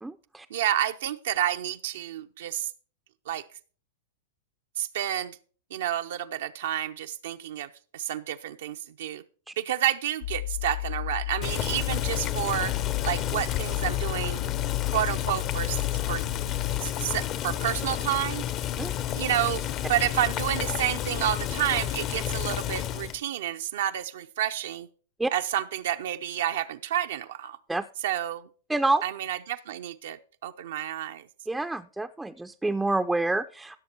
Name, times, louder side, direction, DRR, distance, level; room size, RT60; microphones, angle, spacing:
voice 1, 0.0-0.5 18.8-18.9 25.2-25.3 27.7-27.8 28.7-29.0 31.5-33.8, right 2 dB, 5° right, 6 dB, 0.4 m, -27 dB
voice 2, 0.5-2.7 3.3-3.4 4.8-5.4 5.7-9.2 9.6-12.7 13.0-14.4 14.9-15.8 16.1-16.2 16.8-18.4 19.1-24.9 25.3-27.6 28.0-28.5 29.0-31.3, right 11 dB, 70° right, 7 dB, 0.6 m, -30 dB
sound 1, 10.2-16.8, left 16 dB, 75° left, 1.3 m, -32 dB
Boiling, 11.4-23.2, left 11 dB, 35° left, 0.6 m, -31 dB
15.5 x 6.5 x 4.4 m, 0.43 s
hypercardioid pair, 120°, 0 cm